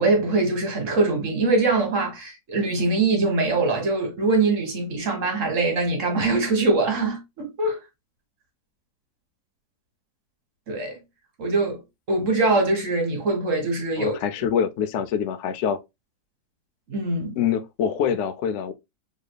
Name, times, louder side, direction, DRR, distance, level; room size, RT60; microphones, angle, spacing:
voice 1, 0.0-7.8 10.7-11.0 11.4-11.8 12.1-14.2 16.9-17.4, right 3 dB, 50° right, 1.4 m, -23 dB
voice 2, 14.0-15.8 17.4-18.7, left 8 dB, 75° left, 0.6 m, -25 dB
4.9 x 3.2 x 2.2 m
omnidirectional pair, 1.8 m